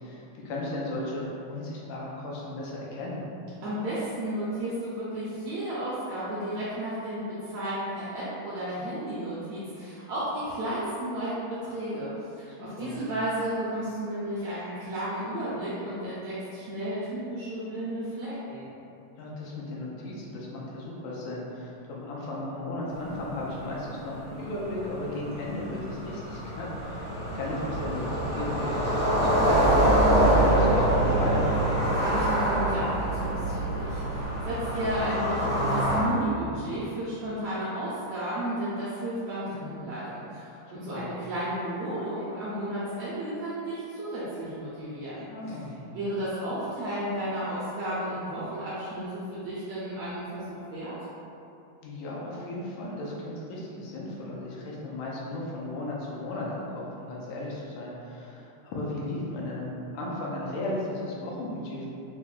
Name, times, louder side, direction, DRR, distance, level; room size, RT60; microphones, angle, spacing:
voice 1, 0.0-3.2 12.5-13.0 19.2-31.5 40.7-41.1 45.3-45.8 51.8-61.9, left 1 dB, 85° left, -4 dB, 2.1 m, -35 dB
voice 2, 3.6-12.1 12.4-18.7 31.9-45.3 45.9-50.9, right 1 dB, 80° right, -10 dB, 1.5 m, -33 dB
sound 1, 23.0-23.1 23.5-23.6 23.8-36.0, right 1 dB, 55° left, 0.7 m, -25 dB
5.6 x 2.1 x 2.3 m, 2.7 s
omnidirectional pair, 3.4 m